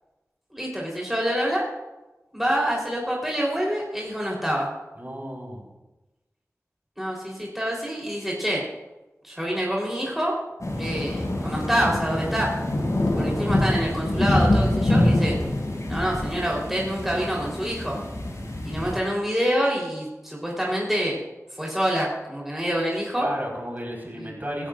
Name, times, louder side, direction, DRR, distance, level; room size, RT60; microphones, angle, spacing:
voice 1, 0.5-1.7 2.3-4.7 7.0-8.6 9.2-10.4 10.8-12.5 13.2-15.4 15.9-18.0 18.6-21.2 21.6-23.3 24.2-24.3, equal, 5° right, -3 dB, 3.8 m, -26 dB
voice 2, 5.0-5.7 23.1-24.7, equal, 35° right, -2 dB, 4.7 m, -33 dB
sound 1, 10.6-19.0, left 1 dB, 75° left, 5.9 m, -25 dB
25.0 x 11.5 x 2.6 m, 1.1 s
wide cardioid pair, 55°, 6 cm